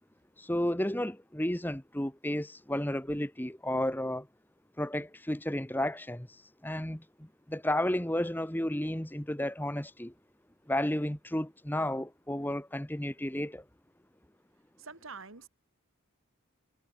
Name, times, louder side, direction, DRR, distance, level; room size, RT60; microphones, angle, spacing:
voice 1, 0.4-4.3 4.8-6.3 6.6-7.0 7.5-10.1 10.7-13.6, left 1 dB, 10° left, 1.3 m, -32 dB
voice 2, 14.8-15.5, right 4 dB, 65° right, 2.2 m, -46 dB
head